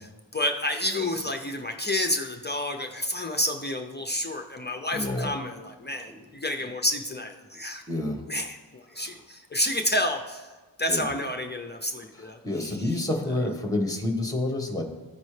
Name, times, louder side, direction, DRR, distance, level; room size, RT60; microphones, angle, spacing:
voice 1, 0.3-7.8 8.3-10.5 10.8-12.8, left 1 dB, 25° left, 3 dB, 0.5 m, -29 dB
voice 2, 4.9-5.3 6.1-6.3 7.9-8.2 8.9-9.2 10.9-11.1 12.1-14.8, left 2 dB, 10° left, 2 dB, 1.2 m, -29 dB
14.0 x 5.3 x 3.2 m, 1.3 s
wide cardioid pair, 135°, 45 cm